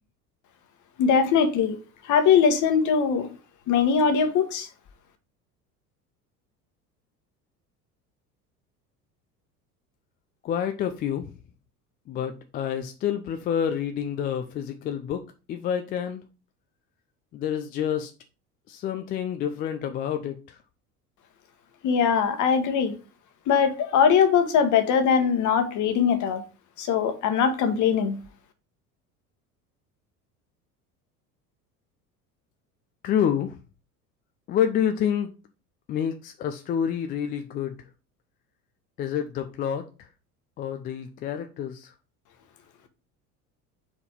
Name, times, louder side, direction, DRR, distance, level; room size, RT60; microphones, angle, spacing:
voice 1, 1.0-1.8 2.0-3.3 3.7-4.7 21.8-22.9 23.5-26.4 26.8-28.2, left 7 dB, 40° left, 8 dB, 1.2 m, -21 dB
voice 2, 10.4-11.3 12.1-16.2 17.3-18.1 18.7-20.6 33.0-33.6 34.5-35.3 35.9-37.8 39.0-39.8 40.6-41.9, left 9 dB, 20° left, 7 dB, 0.4 m, -28 dB
4.7 x 4.0 x 5.0 m, 0.33 s
figure-of-eight pair, 70°, 47 cm